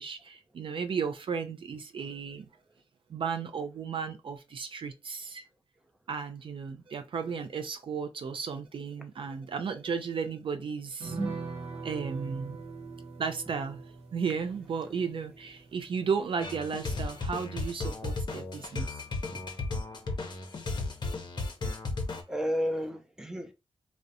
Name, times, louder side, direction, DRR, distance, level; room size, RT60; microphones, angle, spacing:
voice 1, 0.0-2.5 3.1-5.4 6.1-11.2 11.7-12.6 13.2-13.8 14.1-19.0, right 6 dB, 55° right, 0.4 m, -34 dB
sound 1, 11.0-17.8 18.1-18.2 18.5-18.7, right 3 dB, 80° right, 0.9 m, -41 dB
sound 2, 16.4-22.2, left 3 dB, 45° left, 0.7 m, -34 dB
voice 2, 22.3-23.5, equal, 5° right, 0.6 m, -32 dB
2.4 x 2.1 x 2.6 m
cardioid pair, 50°, 11 cm